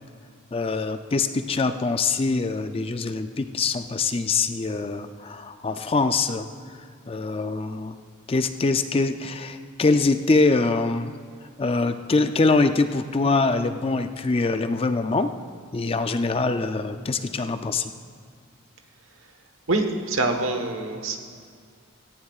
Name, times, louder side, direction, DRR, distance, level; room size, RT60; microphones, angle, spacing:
voice 1, 0.5-6.5 7.1-8.0 8.3-11.1 11.6-15.3 15.7-17.9, left 3 dB, 25° left, 9 dB, 0.4 m, -24 dB
voice 2, 19.7-21.2, right 2 dB, 70° right, 5 dB, 1.2 m, -25 dB
17.5 x 15.0 x 2.4 m, 2.2 s
head